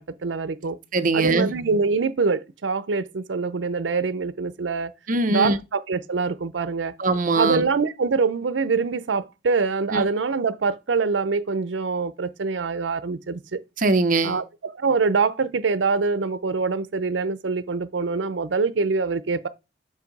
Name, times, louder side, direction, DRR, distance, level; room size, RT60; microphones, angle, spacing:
voice 1, 0.0-0.8 1.1-4.9 5.3-6.9 7.3-13.6 14.2-19.5, right 4 dB, 85° right, 0.6 m, -24 dB
voice 2, 0.9-1.5 5.1-5.6 7.0-7.7 9.9-10.0 13.8-14.4, right 3 dB, 50° right, 0.7 m, -21 dB
7.5 x 2.7 x 5.3 m
head